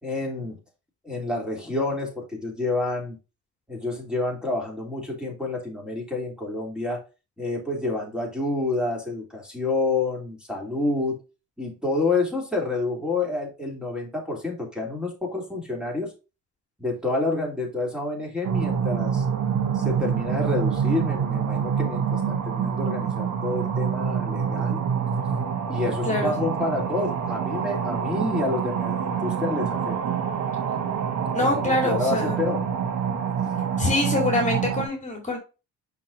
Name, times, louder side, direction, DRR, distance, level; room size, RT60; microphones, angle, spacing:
voice 1, 0.0-0.6 1.0-3.1 3.7-7.0 7.4-11.2 11.6-16.1 16.8-19.2 19.7-24.8 25.7-30.0 31.4-32.6, left 3 dB, 5° right, 3.0 m, -28 dB
sound 1, 18.4-34.9, right 7 dB, 70° right, 1.3 m, -26 dB
voice 2, 26.1-26.4 31.3-32.4 33.8-35.4, left 2 dB, 25° left, 2.6 m, -25 dB
5.9 x 5.9 x 2.7 m
cardioid pair, 90°, 30 cm